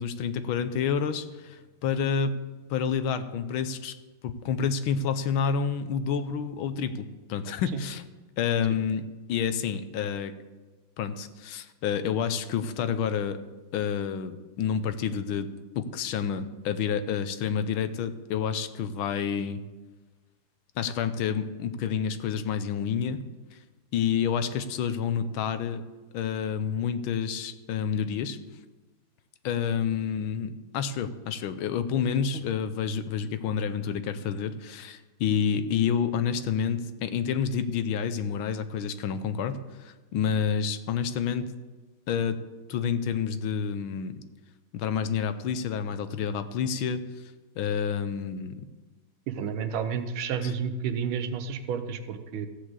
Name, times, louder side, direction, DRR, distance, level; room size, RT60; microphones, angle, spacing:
voice 1, 0.0-2.4 2.7-3.9 4.2-8.0 8.4-10.3 11.0-13.4 13.7-15.5 15.7-19.6 20.8-23.2 23.5-23.6 23.9-25.8 26.1-28.4 29.4-41.5 42.1-42.4 42.7-44.2 44.7-47.0 47.6-48.7 50.4-50.5, left 7 dB, 80° left, 11 dB, 1.5 m, -29 dB
voice 2, 49.3-52.5, right 7 dB, 80° right, 9 dB, 1.6 m, -31 dB
14.5 x 5.0 x 8.0 m, 1.2 s
omnidirectional pair, 2.3 m